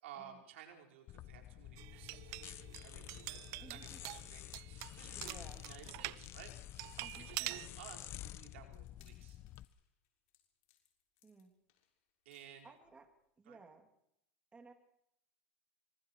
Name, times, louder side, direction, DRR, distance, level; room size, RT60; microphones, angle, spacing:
voice 1, 0.0-6.5 7.2-9.4 12.2-12.7 13.5-13.6, right 9 dB, 85° right, 2 dB, 4.8 m, -55 dB
sound 1, 1.1-9.6, left 13 dB, 40° left, 0.9 m, -50 dB
sound 2, 1.8-6.2 6.8-7.7, right 21 dB, 55° right, 0.7 m, -45 dB
sound 3, 3.0-13.0, left 12 dB, 60° left, 6.3 m, -73 dB
voice 2, 3.6-4.0 5.1-5.6 7.0-7.6 11.2-11.5 12.6-13.1 13.4-13.9 14.5-14.7, right 4 dB, 15° right, 5 dB, 2.7 m, -58 dB
26.0 x 25.5 x 4.7 m, 0.77 s
supercardioid pair, 130°, 7 cm